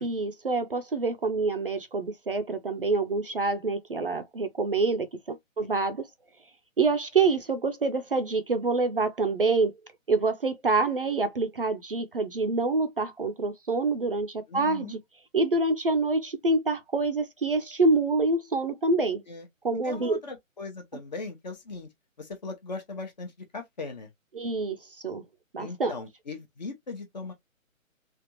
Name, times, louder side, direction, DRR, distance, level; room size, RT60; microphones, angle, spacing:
voice 1, 0.0-6.1 6.8-9.8 10.1-15.0 15.3-19.2 19.6-20.2 24.3-25.2 25.5-25.9, right 3 dB, 45° right, 0.5 m, -26 dB
voice 2, 14.5-15.0 19.3-19.5 19.8-21.9 22.2-24.1 25.6-27.3, left 3 dB, 35° left, 0.8 m, -39 dB
3.3 x 2.4 x 2.7 m
figure-of-eight pair, 140°, 40 cm